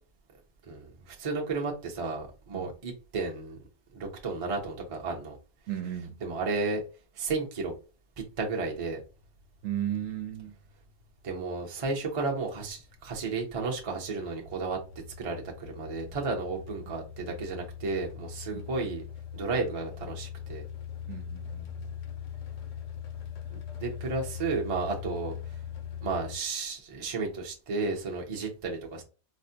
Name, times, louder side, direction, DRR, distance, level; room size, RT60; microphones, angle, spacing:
voice 1, 0.7-3.6 3.9-5.4 6.2-6.8 7.2-7.7 8.4-9.0 11.2-14.8 15.2-19.0 19.3-20.6 23.5-25.4 26.0-29.0, right 4 dB, 35° right, 0.6 m, -33 dB
voice 2, 5.7-6.2 9.6-10.6 17.2-17.4 18.5-18.7 21.1-21.9, right 11 dB, 65° right, 1.0 m, -35 dB
sound 1, 8.3-26.4, left 9 dB, 70° left, 0.9 m, -42 dB
4.2 x 2.1 x 2.7 m
omnidirectional pair, 1.4 m